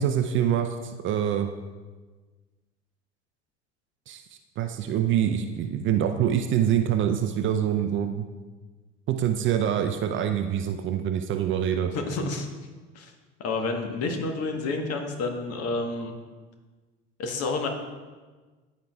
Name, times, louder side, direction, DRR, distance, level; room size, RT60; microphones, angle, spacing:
voice 1, 0.0-1.5 4.1-4.2 4.6-8.3 9.1-11.9, right 9 dB, 35° right, 7 dB, 0.5 m, -25 dB
voice 2, 11.9-12.5 12.9-13.1 13.4-16.1 17.2-17.7, left 3 dB, 45° left, 4 dB, 1.3 m, -29 dB
13.5 x 4.7 x 2.3 m, 1.3 s
figure-of-eight pair, 65°, 36 cm